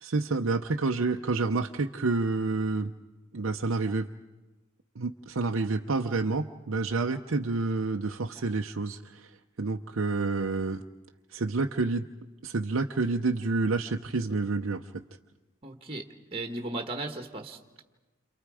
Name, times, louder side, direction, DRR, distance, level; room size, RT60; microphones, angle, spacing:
voice 1, 0.0-2.9 3.3-4.1 5.0-9.3 9.6-10.8 11.3-12.1 12.4-15.0, right 3 dB, 75° right, 4 dB, 0.7 m, -29 dB
voice 2, 15.6-17.8, right 2 dB, 25° right, 4 dB, 1.4 m, -37 dB
29.5 x 27.0 x 4.9 m, 1.2 s
head